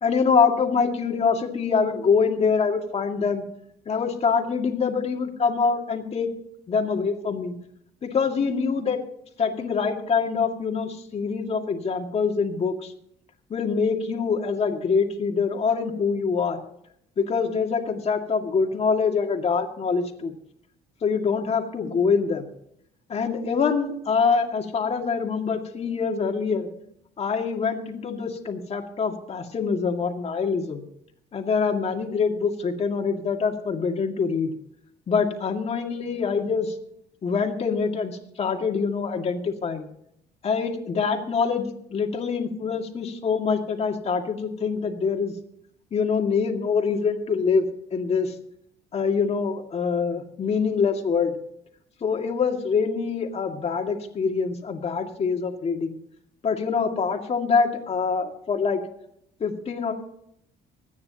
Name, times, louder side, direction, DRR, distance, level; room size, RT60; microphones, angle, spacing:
voice 1, 0.0-3.4 3.9-6.3 6.7-7.5 8.0-9.0 9.4-12.9 13.5-16.6 17.2-20.3 21.0-22.5 23.1-26.7 27.2-30.8 31.3-34.5 35.1-36.8 37.2-39.9 40.4-45.3 45.9-47.7 47.9-48.3 48.9-51.4 52.0-56.0 56.4-58.8 59.4-59.9, left 5 dB, 40° left, 3 dB, 2.1 m, -25 dB
25.0 x 9.6 x 2.9 m, 0.72 s
cardioid pair, 110°, 17 cm